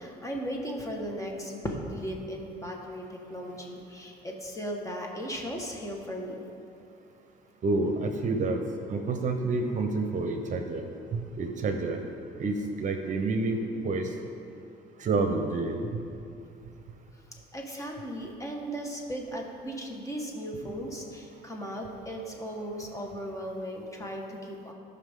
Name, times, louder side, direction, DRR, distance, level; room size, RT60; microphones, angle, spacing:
voice 1, 0.0-6.4 17.5-24.7, equal, 20° left, 0 dB, 1.6 m, -36 dB
voice 2, 7.6-8.6 8.9-10.8 11.1-12.0 12.4-14.1 15.0-16.0, right 3 dB, 50° right, 5 dB, 0.9 m, -28 dB
17.5 x 5.8 x 3.8 m, 2.5 s
cardioid pair, 110°, 17 cm